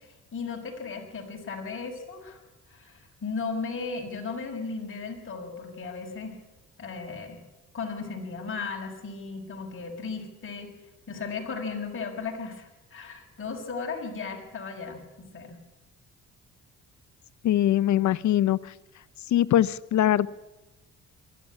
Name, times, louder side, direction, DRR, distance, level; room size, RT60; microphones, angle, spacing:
voice 1, 0.0-2.4 2.7-6.4 6.8-7.4 7.7-10.7 11.1-15.6, left 4 dB, 45° left, 2 dB, 6.5 m, -36 dB
voice 2, 17.4-18.7 19.3-20.3, left 12 dB, 70° left, 17 dB, 0.9 m, -22 dB
23.5 x 13.5 x 9.9 m, 1.1 s
cardioid pair, 90°, 30 cm